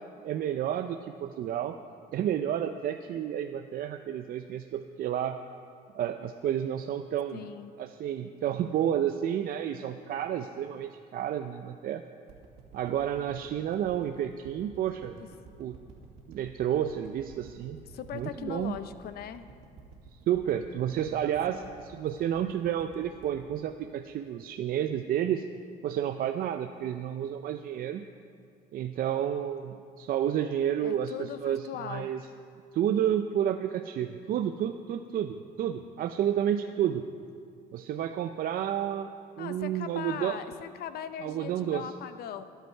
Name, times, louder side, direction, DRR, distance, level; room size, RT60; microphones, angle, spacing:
voice 1, 0.2-1.8 2.1-5.4 6.0-7.4 7.8-12.0 12.7-15.1 15.6-15.8 16.3-17.8 18.1-18.8 20.3-25.4 25.8-28.1 28.7-32.2 32.7-37.0 37.7-39.1 39.4-40.4 41.2-41.9, right 10 dB, 60° right, 7 dB, 0.6 m, -30 dB
voice 2, 7.3-7.7 15.2-15.3 17.8-19.4 21.5-21.7 30.8-32.1 36.5-36.9 39.4-42.4, left 9 dB, 65° left, 11 dB, 0.7 m, -40 dB
sound 1, 12.3-24.6 25.0-25.1, right 4 dB, 90° right, 2.4 m, -52 dB
22.5 x 8.1 x 4.6 m, 2.4 s
cardioid pair, 110°, 17 cm